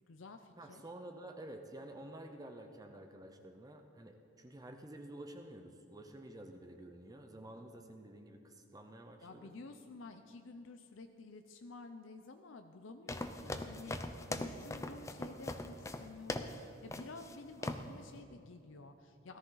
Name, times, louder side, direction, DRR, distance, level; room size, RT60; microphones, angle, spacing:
voice 1, 0.0-0.8 9.2-19.4, left 3 dB, 70° left, 7 dB, 0.6 m, -52 dB
voice 2, 0.6-9.5, right 1 dB, 20° right, 5 dB, 0.7 m, -50 dB
sound 1, 13.1-16.6 16.9-17.3 17.6-17.9, left 2 dB, 15° left, 0.5 m, -41 dB
17.5 x 13.5 x 3.9 m, 2.6 s
head